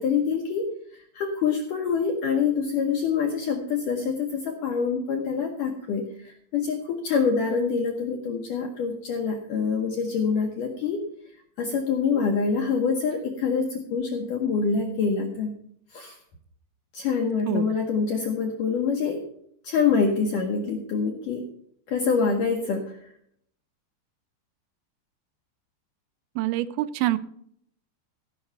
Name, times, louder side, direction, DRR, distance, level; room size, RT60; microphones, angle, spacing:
voice 1, 0.0-11.0 11.6-15.6 15.9-16.2 16.9-19.2 19.6-21.4 21.9-23.1, left 5 dB, 75° left, 2 dB, 1.9 m, -26 dB
voice 2, 26.4-27.2, right 15 dB, 90° right, 14 dB, 3.0 m, -26 dB
15.5 x 5.9 x 6.8 m, 0.69 s
omnidirectional pair, 5.2 m